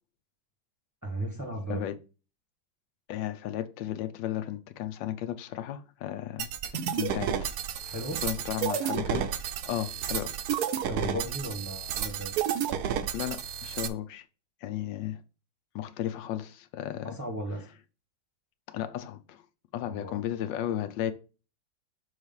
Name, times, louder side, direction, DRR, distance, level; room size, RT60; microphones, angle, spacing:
voice 1, 1.0-1.9 7.8-8.2 10.8-12.3 17.0-17.7 19.8-20.2, right 1 dB, 15° right, 0.8 m, -36 dB
voice 2, 3.1-7.4 8.1-10.4 13.1-14.2 14.6-15.2 15.7-17.2 18.7-19.4 19.7-21.1, left 12 dB, 85° left, 1.3 m, -34 dB
sound 1, 6.4-13.9, right 9 dB, 70° right, 1.1 m, -31 dB
6.4 x 3.2 x 5.4 m
omnidirectional pair, 2.0 m